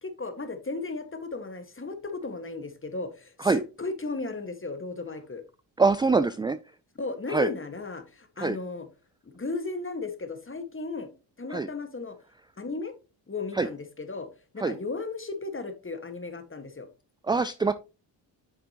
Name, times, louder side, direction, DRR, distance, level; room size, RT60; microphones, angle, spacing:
voice 1, 0.0-5.4 7.0-8.9 9.2-11.1 11.4-12.2 12.6-12.9 13.3-14.3 14.5-16.9, left 3 dB, 25° left, 9 dB, 1.6 m, -35 dB
voice 2, 5.8-6.6 7.3-7.5 8.4-8.6 11.5-11.7 13.5-13.7 14.6-14.7 17.2-17.7, right 4 dB, 10° right, 13 dB, 0.3 m, -24 dB
8.2 x 6.0 x 2.9 m, 0.31 s
supercardioid pair, 50°, 49 cm